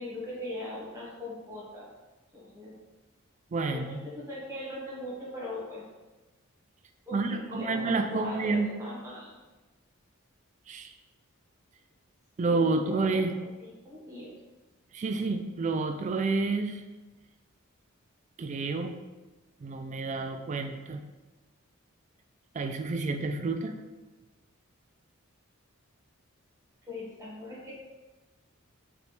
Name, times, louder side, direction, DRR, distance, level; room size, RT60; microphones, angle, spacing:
voice 1, 0.0-1.9 2.3-2.7 3.7-5.9 7.1-9.4 12.4-13.1 13.6-14.4 26.9-27.7, left 1 dB, 15° right, -6 dB, 1.1 m, -40 dB
voice 2, 3.5-4.0 7.1-8.7 10.7-10.9 12.4-13.3 14.9-16.8 18.4-19.0 19.6-21.0 22.5-23.7, right 3 dB, 35° right, 7 dB, 0.3 m, -29 dB
4.9 x 3.3 x 3.1 m, 1.2 s
head